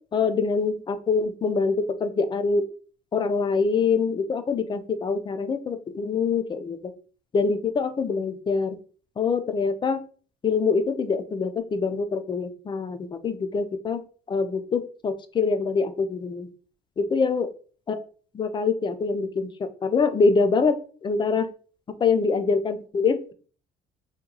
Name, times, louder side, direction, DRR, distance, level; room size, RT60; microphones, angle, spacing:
voice 1, 0.1-2.7 3.1-6.9 7.3-8.8 9.2-10.0 10.4-14.0 14.3-16.5 17.0-17.5 17.9-18.0 18.3-20.8 21.0-21.5 22.0-23.3, left 4 dB, 30° left, 10 dB, 0.4 m, -24 dB
2.9 x 2.2 x 3.8 m, 0.40 s
cardioid pair, 110°, 17 cm